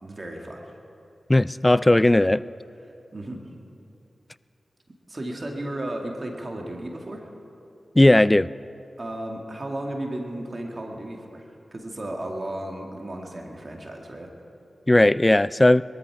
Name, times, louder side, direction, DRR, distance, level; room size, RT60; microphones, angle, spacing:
voice 1, 0.0-0.7 3.1-3.4 5.1-7.3 9.0-14.3, right 1 dB, 45° right, 1 dB, 2.2 m, -34 dB
voice 2, 1.3-2.4 8.0-8.5 14.9-15.8, left 1 dB, 25° left, 18 dB, 0.4 m, -17 dB
21.5 x 13.5 x 4.8 m, 2.7 s
cardioid pair, 45°, 0 cm